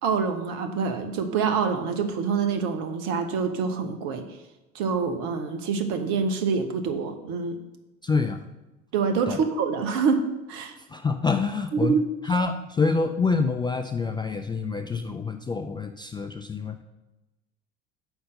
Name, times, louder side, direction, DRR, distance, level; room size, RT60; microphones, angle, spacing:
voice 1, 0.0-4.2 4.7-7.6 8.9-10.2 10.5-10.7 11.7-12.0, right 5 dB, 55° right, 6 dB, 1.3 m, -26 dB
voice 2, 8.0-8.4 9.3-9.4 10.9-12.0 12.2-16.8, left 4 dB, 10° left, 6 dB, 0.4 m, -26 dB
6.9 x 5.6 x 6.6 m, 1.0 s
figure-of-eight pair, 65°, 41 cm